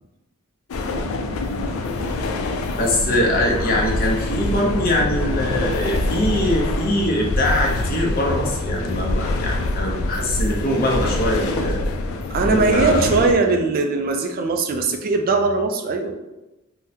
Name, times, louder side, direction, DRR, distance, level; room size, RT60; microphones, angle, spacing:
sound 1, 0.7-13.3, left 2 dB, 85° left, 0.4 m, -25 dB
voice 1, 2.8-11.8 12.4-13.1, left 1 dB, 45° left, -1 dB, 0.7 m, -22 dB
voice 2, 12.3-16.1, right 3 dB, 45° right, 5 dB, 0.3 m, -20 dB
3.5 x 2.1 x 2.7 m, 1.0 s
head